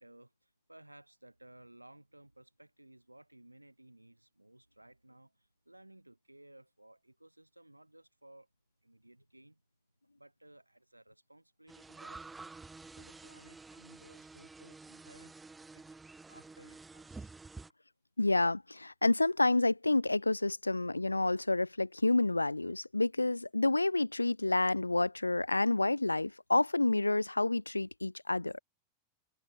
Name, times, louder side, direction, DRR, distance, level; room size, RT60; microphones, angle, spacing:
voice 1, 0.0-8.5 8.8-9.6 10.2-12.3 12.9-15.3 15.7-15.8 16.3-17.3, right 1 dB, 85° right, 4.3 m, -58 dB
sound 1, 11.7-17.7, right 3 dB, 10° right, 2.8 m, -50 dB
voice 2, 18.2-28.6, left 2 dB, 85° left, 0.4 m, -29 dB
figure-of-eight pair, 90°, 0 cm